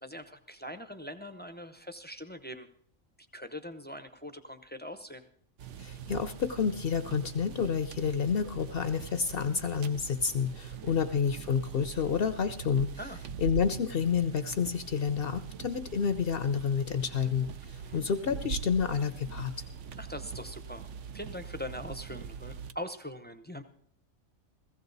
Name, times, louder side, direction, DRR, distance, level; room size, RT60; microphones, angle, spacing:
voice 1, 0.0-2.7 3.3-5.3 10.7-11.0 13.0-13.2 17.6-18.0 20.0-20.9 21.1-23.6, equal, 10° left, 8 dB, 0.5 m, -42 dB
sound 1, 5.6-22.7, right 6 dB, 65° right, 1.0 m, -42 dB
voice 2, 5.8-12.9 13.4-17.4 17.9-19.5, left 6 dB, 55° left, 11 dB, 0.7 m, -29 dB
16.0 x 15.5 x 4.0 m, 0.64 s
omnidirectional pair, 1.4 m